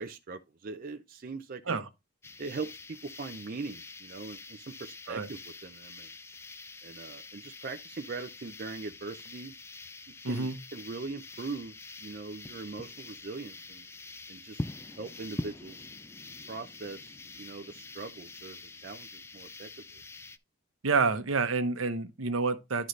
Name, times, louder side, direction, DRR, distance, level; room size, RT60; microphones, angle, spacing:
voice 1, 0.0-1.8 2.4-6.1 6.8-9.5 10.3-11.7 12.0-13.9 14.3-15.9 16.5-20.0, right 4 dB, 45° right, 0.5 m, -41 dB
sound 1, 2.2-20.4, left 2 dB, 10° left, 0.3 m, -45 dB
voice 2, 10.2-10.6 20.8-22.9, right 4 dB, 80° right, 0.9 m, -28 dB
11.0 x 3.9 x 3.2 m
head